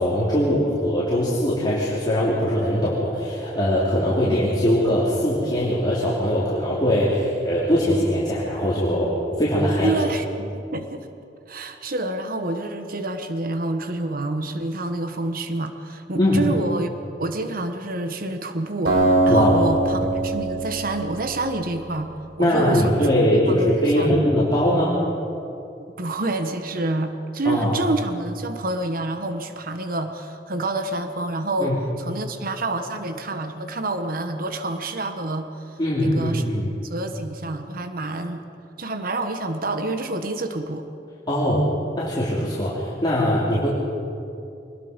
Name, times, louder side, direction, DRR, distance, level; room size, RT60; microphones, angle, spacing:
voice 1, 0.0-9.1 9.4-9.9 16.2-16.4 19.3-19.6 22.4-25.0 27.4-27.7 31.6-31.8 35.8-36.7 41.3-41.7 42.0-43.7, equal, 25° left, -8 dB, 3.4 m, -21 dB
voice 2, 9.8-11.1 11.5-16.9 17.2-23.1 23.5-23.7 24.0-24.2 26.0-35.5 36.0-36.4 36.8-38.4 38.8-40.9, right 2 dB, 55° right, 7 dB, 1.3 m, -27 dB
Acoustic guitar, 18.9-22.0, right 2 dB, 70° right, 5.4 m, -22 dB
24.5 x 20.5 x 5.3 m, 2.6 s
head